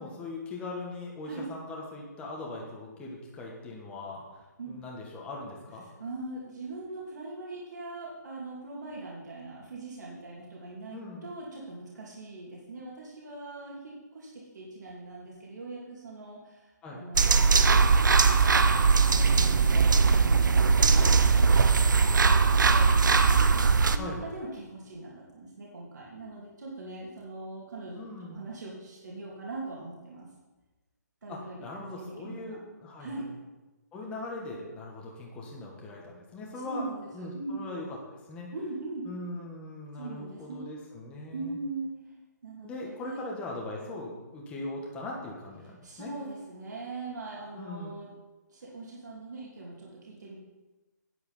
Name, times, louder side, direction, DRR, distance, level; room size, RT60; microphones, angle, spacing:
voice 1, 0.0-5.8 10.9-11.3 16.8-17.0 24.0-24.3 28.0-28.5 31.3-33.1 33.9-36.9 37.1-38.5 39.0-41.6 42.6-46.1 47.5-47.9, left 2 dB, 10° left, -2 dB, 1.5 m, -40 dB
voice 2, 6.0-22.9 23.9-28.0 28.3-30.3 31.2-32.4 33.0-33.3 36.6-37.6 38.5-39.1 39.9-40.6 41.3-41.9 42.4-43.2 45.8-48.1 48.5-50.4, right 2 dB, 70° right, -4 dB, 2.7 m, -41 dB
sound 1, 17.1-24.0, right 5 dB, 85° right, 0.8 m, -20 dB
9.6 x 8.0 x 5.6 m, 1.1 s
hypercardioid pair, 160°, 10 cm